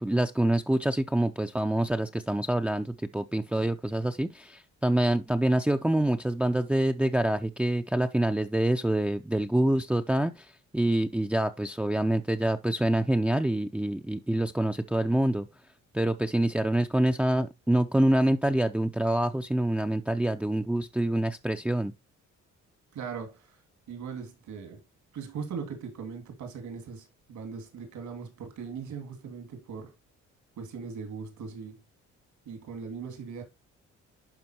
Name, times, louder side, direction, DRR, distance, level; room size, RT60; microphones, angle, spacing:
voice 1, 0.0-15.5 15.9-21.9, right 1 dB, 5° right, 0.5 m, -26 dB
voice 2, 22.9-23.6 23.9-24.8 25.1-29.9 30.6-31.8 32.5-33.4, right 6 dB, 75° right, 2.5 m, -39 dB
11.5 x 4.3 x 2.9 m
cardioid pair, 90°, 30 cm